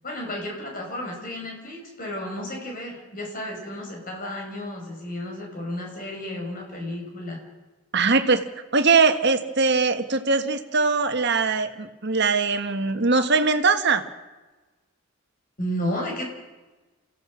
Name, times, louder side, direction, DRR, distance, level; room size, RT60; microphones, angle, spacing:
voice 1, 0.0-7.4 15.6-16.3, left 1 dB, 40° left, 1 dB, 5.8 m, -32 dB
voice 2, 7.9-8.4 8.7-14.0, right 4 dB, 50° right, 8 dB, 1.5 m, -21 dB
29.0 x 16.0 x 6.3 m, 1.2 s
head